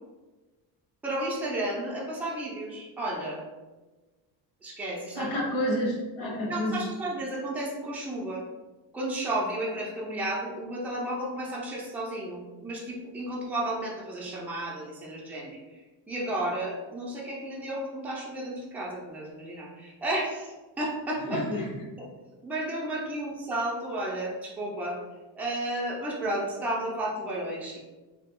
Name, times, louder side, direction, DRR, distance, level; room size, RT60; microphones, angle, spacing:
voice 1, 1.0-3.4 4.6-5.4 6.5-8.4 8.9-15.6 16.1-21.6 22.4-25.0 25.3-27.8, right 1 dB, 5° right, -4 dB, 0.5 m, -32 dB
voice 2, 5.1-6.8 21.3-21.7, left 1 dB, 80° left, -2 dB, 1.3 m, -29 dB
2.8 x 2.3 x 3.6 m, 1.2 s
cardioid pair, 145°, 46 cm